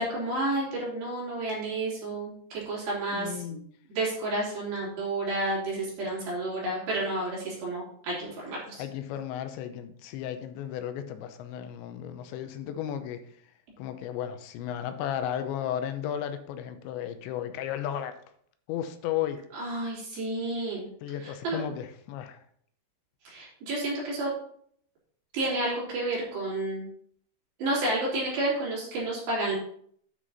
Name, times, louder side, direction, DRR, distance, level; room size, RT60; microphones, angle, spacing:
voice 1, 0.0-3.6 3.9-8.8 19.5-20.9 21.2-21.6 23.2-24.3 25.3-26.9 27.6-29.6, right 2 dB, 55° right, 4.9 m, -31 dB
voice 2, 3.1-3.6 8.8-13.2 13.8-18.2 18.7-19.4 21.0-22.4, left 10 dB, 85° left, 3.0 m, -34 dB
9.3 x 6.2 x 4.0 m
omnidirectional pair, 5.2 m